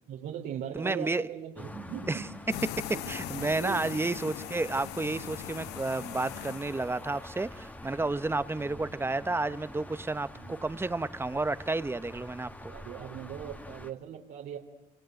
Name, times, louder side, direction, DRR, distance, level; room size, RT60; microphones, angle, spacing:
voice 1, 0.1-2.3 2.9-3.9 10.3-10.6 12.7-14.6, right 9 dB, 75° right, 0 dB, 3.3 m, -40 dB
voice 2, 0.7-1.2 2.1-2.2 2.7-12.7, right 2 dB, 15° right, 14 dB, 1.1 m, -31 dB
sound 1, 1.5-13.9, left 1 dB, 10° left, 1.9 m, -47 dB
sound 2, 2.5-7.3, left 14 dB, 85° left, 1.0 m, -40 dB
27.5 x 26.5 x 7.9 m, 0.91 s
cardioid pair, 110°, 17 cm